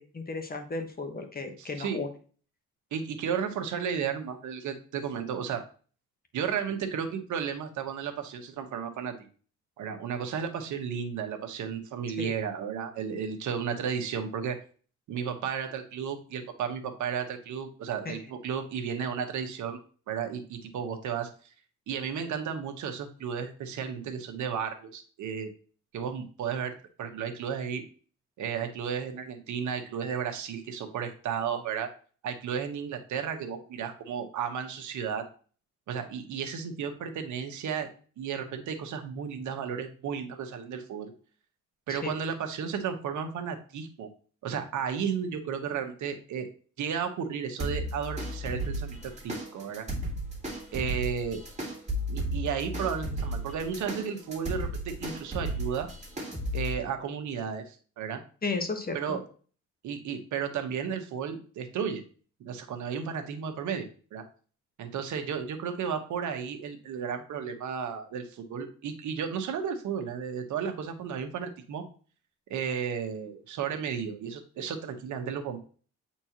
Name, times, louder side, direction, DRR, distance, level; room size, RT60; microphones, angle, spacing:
voice 1, 0.0-2.1 12.2-12.3 18.0-18.2 41.9-42.1 58.4-59.2, left 3 dB, 30° left, 6 dB, 1.3 m, -34 dB
voice 2, 1.6-2.0 2.9-5.6 6.3-9.1 9.8-14.6 15.1-19.8 20.1-21.3 21.9-25.5 25.9-26.7 27.0-27.8 28.4-31.9 32.2-35.2 35.9-37.9 38.2-41.1 41.9-44.1 44.4-46.5 46.8-49.8 50.7-51.4 52.1-55.9 56.5-58.2 58.9-59.2 59.8-62.0 62.4-64.2 64.8-71.8 72.5-75.6, right 7 dB, 75° right, 6 dB, 1.3 m, -33 dB
sound 1, 47.6-56.7, right 1 dB, 20° right, 2.5 m, -34 dB
8.2 x 4.4 x 2.9 m, 0.40 s
cardioid pair, 90°, 30 cm